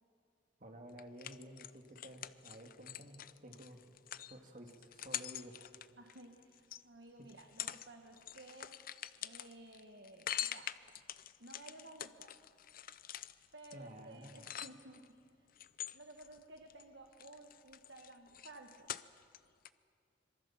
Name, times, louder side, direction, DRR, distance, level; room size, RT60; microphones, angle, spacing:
voice 1, 0.6-3.2 3.4-3.8 4.3-5.6 13.7-14.3, right 1 dB, 40° right, 3 dB, 2.3 m, -52 dB
sound 1, 1.0-6.8 7.3-15.1 15.6-16.8 17.1-19.4 19.7-19.8, left 11 dB, 45° left, 0.6 m, -45 dB
voice 2, 6.0-8.8 9.2-10.7 11.4-12.3 13.5-15.1 15.3-15.5 15.9-18.9, right 2 dB, 60° right, 4 dB, 1.5 m, -55 dB
26.0 x 23.0 x 7.3 m, 2.4 s
head